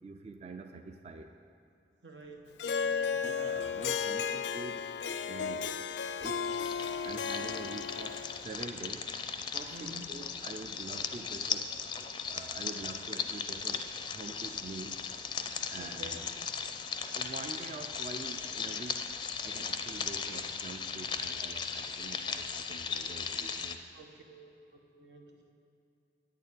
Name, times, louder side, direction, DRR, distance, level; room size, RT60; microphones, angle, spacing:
voice 1, 0.0-1.3 3.2-4.9 5.3-5.8 6.2-6.6 7.0-9.1 9.5-11.8 12.3-15.1 15.7-16.3 17.1-19.0 19.4-23.8, right 3 dB, 35° right, 6 dB, 0.4 m, -45 dB
voice 2, 2.0-2.6 2.8-3.2 5.2-5.3 9.7-10.1 15.8-16.2 23.9-25.5, right 2 dB, 85° right, 2 dB, 1.3 m, -50 dB
Harp, 2.6-8.4, left 6 dB, 85° left, 0.5 m, -34 dB
sound 1, 6.2-23.7, left 6 dB, 25° left, 0.4 m, -37 dB
9.1 x 6.9 x 8.2 m, 2.6 s
head